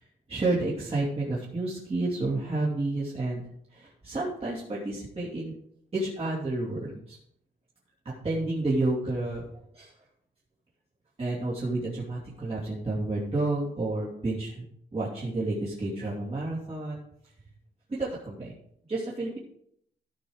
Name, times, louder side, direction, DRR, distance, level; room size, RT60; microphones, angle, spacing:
voice 1, 0.3-3.4 3.7-5.5 5.9-7.2 8.2-9.4 9.7-9.9 11.2-14.6 14.9-17.0 17.9-18.5 18.9-19.4, right 2 dB, 30° right, -6 dB, 2.6 m, -30 dB
14.5 x 5.5 x 4.9 m, 0.70 s
wide cardioid pair, 125°, 20 cm